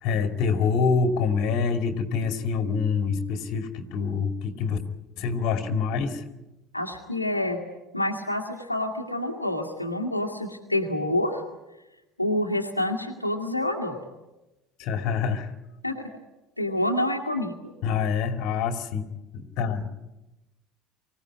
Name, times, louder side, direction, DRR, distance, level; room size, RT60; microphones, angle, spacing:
voice 1, 0.0-4.8 5.2-6.2 14.8-15.5 17.8-19.1 19.3-19.9, left 5 dB, 55° left, 7 dB, 2.6 m, -26 dB
voice 2, 6.7-7.6 7.9-11.4 12.2-14.0 15.8-16.1 16.6-17.7, left 1 dB, 90° left, 1 dB, 2.0 m, -27 dB
24.5 x 16.5 x 9.8 m, 0.98 s
figure-of-eight pair, 65°, 0 cm